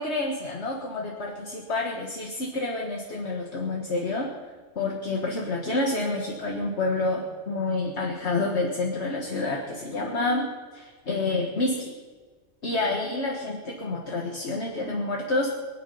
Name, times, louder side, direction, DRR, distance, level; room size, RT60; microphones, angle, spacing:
voice 1, 0.0-4.3 4.8-10.5 10.7-11.9 12.6-15.5, left 2 dB, 55° left, -1 dB, 1.8 m, -28 dB
23.5 x 9.7 x 5.5 m, 1.5 s
omnidirectional pair, 1.4 m